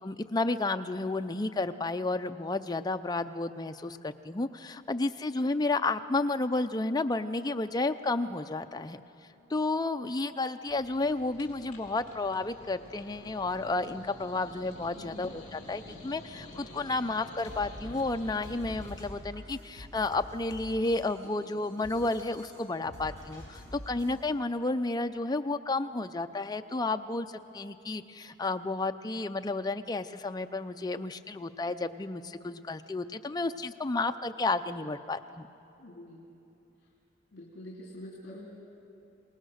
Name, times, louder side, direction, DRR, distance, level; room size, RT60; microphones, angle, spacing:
voice 1, 0.0-9.0 9.5-35.5, left 2 dB, 20° left, 8 dB, 0.5 m, -32 dB
sound 1, 10.7-18.9, left 1 dB, 35° left, 3.8 m, -49 dB
voice 2, 15.0-15.3 35.8-36.2 37.3-38.5, left 1 dB, 55° left, -2 dB, 2.5 m, -46 dB
sound 2, 17.3-24.1, equal, 65° right, 7.0 m, -47 dB
26.5 x 19.0 x 6.4 m, 2.9 s
head